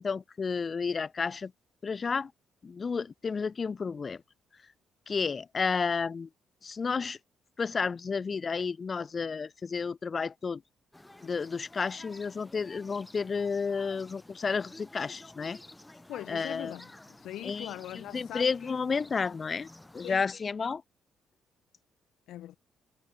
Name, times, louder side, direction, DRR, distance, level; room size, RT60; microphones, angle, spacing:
voice 1, 0.0-1.5 1.8-2.3 2.6-4.2 5.1-6.3 6.6-7.2 7.6-10.6 11.2-15.6 16.3-16.7 17.4-19.7 19.9-20.8, left 5 dB, 35° left, 6.0 m, -31 dB
sound 1, 10.9-20.2, left 2 dB, 10° left, 6.5 m, -52 dB
voice 2, 16.1-18.5 20.0-20.2 22.3-22.6, left 13 dB, 80° left, 2.1 m, -41 dB
cardioid pair, 90°, 0 cm